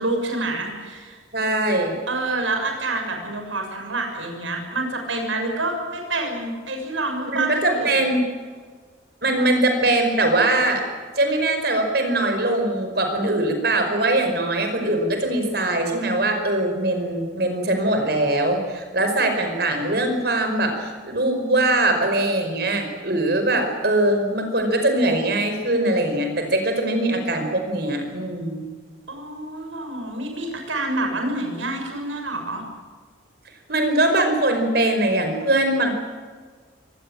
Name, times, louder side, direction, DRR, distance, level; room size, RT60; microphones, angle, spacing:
voice 1, 0.0-1.2 2.1-7.9 9.4-9.5 29.1-32.6, right 2 dB, 80° right, 3 dB, 6.9 m, -27 dB
voice 2, 1.3-2.0 7.3-8.2 9.2-10.8 11.2-28.6 33.7-35.9, right 1 dB, 55° right, 5 dB, 5.3 m, -21 dB
24.5 x 19.5 x 8.8 m, 1.5 s
head